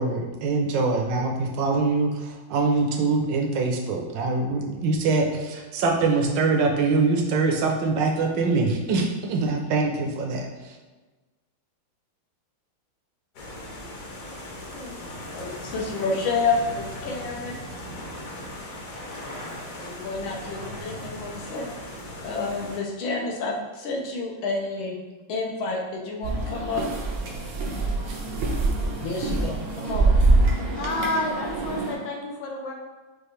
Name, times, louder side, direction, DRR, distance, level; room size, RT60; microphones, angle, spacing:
voice 1, 0.0-10.5, right 3 dB, 70° right, 3 dB, 1.3 m, -24 dB
sound 1, 13.3-22.8, left 1 dB, 55° left, 1.0 m, -38 dB
voice 2, 15.3-17.6 19.8-21.7 22.2-25.0 25.3-26.8 29.0-30.1, left 3 dB, 90° left, 0 dB, 1.6 m, -29 dB
sound 2, 26.2-31.9, right 2 dB, 90° right, 1.6 m, -24 dB
voice 3, 30.7-32.7, left 2 dB, 70° left, 0 dB, 1.4 m, -29 dB
6.6 x 2.5 x 3.1 m, 1.2 s
omnidirectional pair, 2.2 m